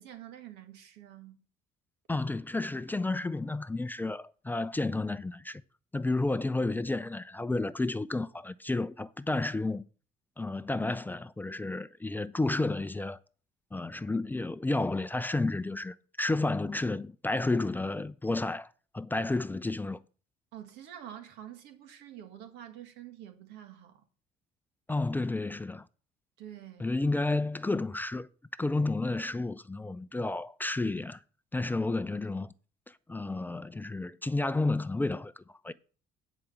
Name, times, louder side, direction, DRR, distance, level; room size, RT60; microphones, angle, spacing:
voice 1, 0.0-1.4 20.5-24.0 26.4-26.9, right 11 dB, 90° right, 1.8 m, -47 dB
voice 2, 2.1-5.6 5.9-9.8 10.4-13.2 13.7-18.7 18.9-20.0 24.9-25.9 26.8-28.3 28.6-31.2 31.5-32.5 32.9-35.7, left 2 dB, 10° left, 0.4 m, -31 dB
9.7 x 5.0 x 7.1 m
cardioid pair, 110°, 17 cm